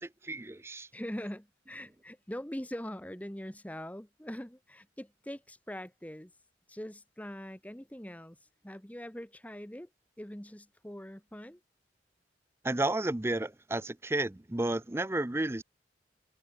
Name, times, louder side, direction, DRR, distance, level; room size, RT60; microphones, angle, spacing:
voice 1, 0.0-0.9 12.6-15.6, right 2 dB, 15° right, 0.5 m, -32 dB
voice 2, 0.9-6.3 6.7-8.4 8.6-9.9 10.2-11.6, equal, 10° left, 1.1 m, -42 dB
head